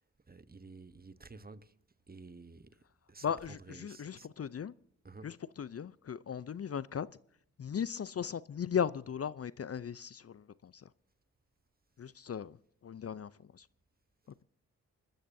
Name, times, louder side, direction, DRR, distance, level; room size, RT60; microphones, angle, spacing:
voice 1, 0.3-1.7 2.1-4.3 5.0-5.3, right 3 dB, 25° right, 1.1 m, -52 dB
voice 2, 3.2-4.7 5.2-7.1 7.6-10.9 12.0-12.6 12.8-13.7, left 7 dB, 40° left, 0.6 m, -37 dB
29.0 x 13.0 x 2.7 m
supercardioid pair, 45°, 36 cm